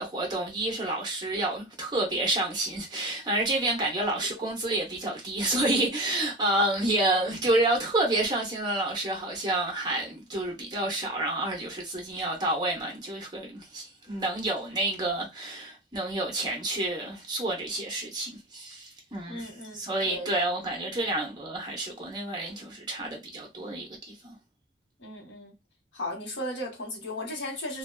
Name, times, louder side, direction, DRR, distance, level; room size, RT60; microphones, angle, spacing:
voice 1, 0.0-24.3, right 2 dB, 25° right, 0.8 m, -29 dB
voice 2, 19.3-20.3 25.0-25.5 25.9-27.8, left 1 dB, 90° left, 1.0 m, -36 dB
2.5 x 2.2 x 2.3 m
head